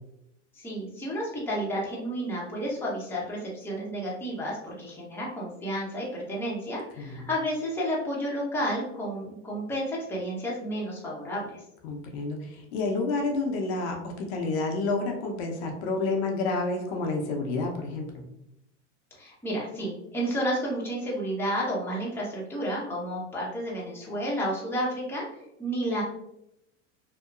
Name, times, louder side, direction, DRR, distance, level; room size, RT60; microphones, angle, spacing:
voice 1, 0.6-11.6 19.2-25.3 25.6-26.0, equal, 5° left, -5 dB, 0.7 m, -31 dB
voice 2, 7.0-7.3 11.8-18.2, left 3 dB, 60° left, 1 dB, 0.7 m, -29 dB
2.8 x 2.0 x 2.4 m, 0.81 s
hypercardioid pair, 105°, 36 cm